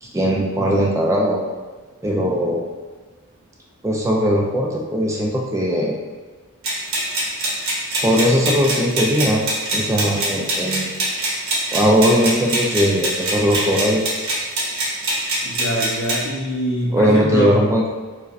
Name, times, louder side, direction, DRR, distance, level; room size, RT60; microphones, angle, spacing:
voice 1, 0.0-1.4 2.0-2.6 3.8-5.9 8.0-9.4 9.7-11.0 11.7-14.0 16.9-17.9, equal, 15° right, -2 dB, 0.3 m, -19 dB
sound 1, 6.6-16.2, right 1 dB, 70° right, 1.0 m, -24 dB
voice 2, 15.4-17.6, right 1 dB, 65° left, -4 dB, 0.9 m, -23 dB
4.7 x 2.1 x 2.6 m, 1.3 s
head